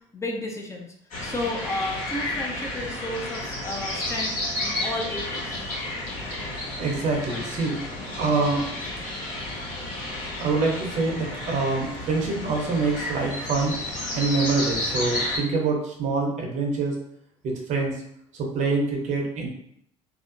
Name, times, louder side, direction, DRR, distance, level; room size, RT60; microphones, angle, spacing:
voice 1, 0.1-0.9 1.2-4.3 4.6-5.7, left 1 dB, 20° left, 1 dB, 0.5 m, -32 dB
sound 1, 1.1-15.4, left 1 dB, 65° left, 1.1 m, -32 dB
voice 2, 6.8-7.8 8.2-8.6 10.4-13.8 14.1-16.9 17.4-18.0 18.4-19.5, right 3 dB, 55° right, 1 dB, 0.7 m, -25 dB
2.5 x 2.0 x 2.5 m, 0.71 s
supercardioid pair, 75°, 15 cm